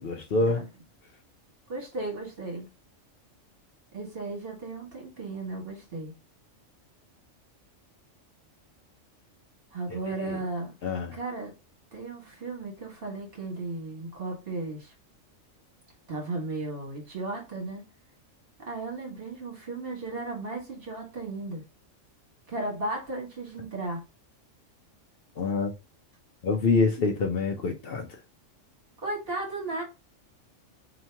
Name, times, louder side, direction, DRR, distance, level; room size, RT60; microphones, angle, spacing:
voice 1, 0.0-0.6 9.9-10.0 10.8-11.1 25.4-25.7 26.4-28.1, left 3 dB, 60° left, 0.7 m, -26 dB
voice 2, 1.7-2.7 3.9-6.1 9.7-10.7 11.1-11.5 11.9-14.9 16.1-17.8 18.7-21.6 22.5-24.0 29.0-29.8, right 2 dB, 45° right, 1.6 m, -35 dB
2.9 x 2.8 x 4.4 m
omnidirectional pair, 1.3 m